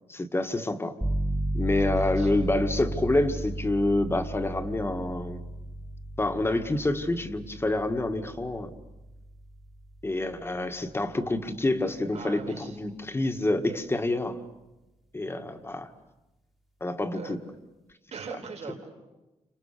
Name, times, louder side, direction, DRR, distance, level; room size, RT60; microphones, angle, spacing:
voice 1, 0.1-0.9 1.5-5.4 6.2-8.7 10.0-14.4 15.1-15.9 16.8-17.4, left 2 dB, 20° left, 7 dB, 1.9 m, -27 dB
sound 1, 1.0-11.5, right 1 dB, ahead, 1.9 m, -34 dB
voice 2, 1.7-2.5 12.1-12.8 17.1-17.4 18.1-18.9, right 5 dB, 65° right, 1 dB, 4.6 m, -41 dB
29.5 x 27.5 x 6.8 m, 1.0 s
cardioid pair, 110°, 12 cm